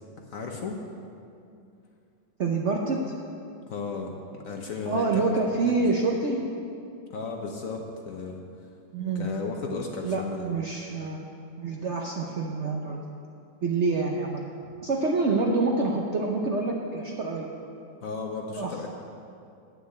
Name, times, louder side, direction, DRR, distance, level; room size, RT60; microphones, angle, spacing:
voice 1, 0.2-0.8 3.7-5.2 7.1-8.4 9.1-10.5 14.6-14.7 18.0-18.9, left 4 dB, 55° left, 2 dB, 1.0 m, -34 dB
voice 2, 2.4-3.0 4.9-6.5 8.9-9.3 10.0-11.3 11.6-13.0 13.6-14.4 14.8-17.5 18.6-18.8, right 3 dB, 60° right, 0 dB, 0.7 m, -27 dB
9.5 x 6.3 x 8.0 m, 2.5 s
omnidirectional pair, 2.0 m